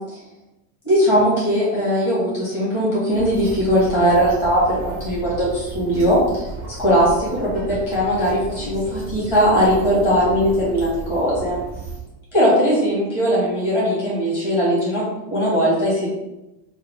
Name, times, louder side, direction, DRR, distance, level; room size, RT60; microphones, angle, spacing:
voice 1, 0.8-6.4 6.8-11.6 12.3-15.0 15.3-16.1, equal, 5° right, -7 dB, 1.3 m, -19 dB
sound 1, 3.1-12.0, right 3 dB, 70° right, 1.1 m, -34 dB
4.4 x 2.1 x 3.5 m, 0.96 s
supercardioid pair, 160°, 47 cm